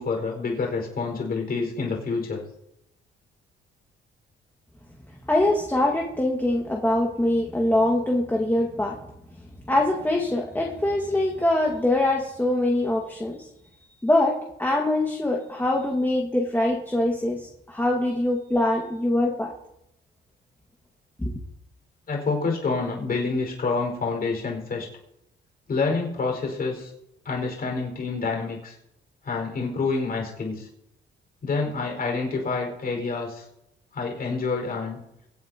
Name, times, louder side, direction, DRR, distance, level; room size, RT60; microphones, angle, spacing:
voice 1, 0.0-2.4 22.1-24.9 25.7-26.9 27.2-28.8 29.2-30.7 31.4-33.4 33.9-35.0, left 4 dB, 50° left, 1 dB, 5.1 m, -27 dB
voice 2, 5.3-9.0 9.7-13.5 14.0-19.5 21.2-21.3, left 1 dB, 10° left, -1 dB, 1.8 m, -23 dB
24.0 x 8.7 x 2.9 m, 0.83 s
cardioid pair, 90°, 20 cm